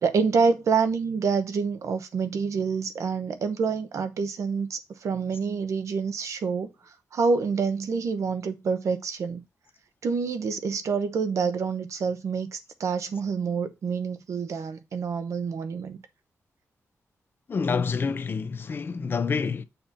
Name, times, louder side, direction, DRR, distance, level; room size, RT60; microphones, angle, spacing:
voice 1, 0.0-6.7 7.1-9.4 10.0-16.0, right 5 dB, 65° right, 0.8 m, -27 dB
voice 2, 17.5-19.6, left 5 dB, 40° left, 0.5 m, -27 dB
6.7 x 2.8 x 5.7 m
wide cardioid pair, 155°, 6 cm